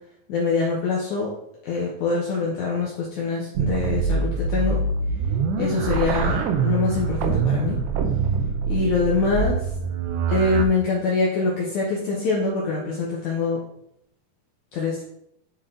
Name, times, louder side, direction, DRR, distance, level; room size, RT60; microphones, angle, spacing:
voice 1, 0.3-1.3 1.6-4.8 5.6-7.8 8.7-9.7 10.3-13.6 14.7-15.0, left 4 dB, 65° left, -4 dB, 2.2 m, -24 dB
sound 1, 3.6-10.7, right 5 dB, 75° right, 2.0 m, -24 dB
9.0 x 4.1 x 3.8 m, 0.76 s
omnidirectional pair, 4.2 m